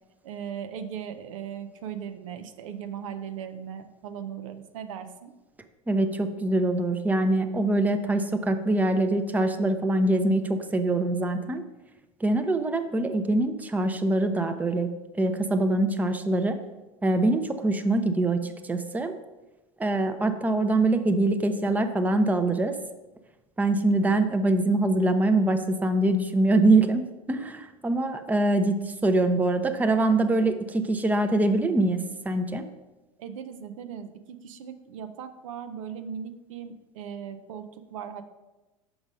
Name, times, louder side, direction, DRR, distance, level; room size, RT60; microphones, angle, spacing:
voice 1, 0.2-5.3 33.2-38.2, right 8 dB, 70° right, 9 dB, 0.6 m, -38 dB
voice 2, 5.9-11.6 12.2-14.9 15.1-16.6 17.0-19.1 19.8-22.8 23.6-32.7, right 2 dB, 10° right, 7 dB, 0.6 m, -24 dB
5.9 x 5.4 x 5.2 m, 1.1 s
hypercardioid pair, 85°, 18 cm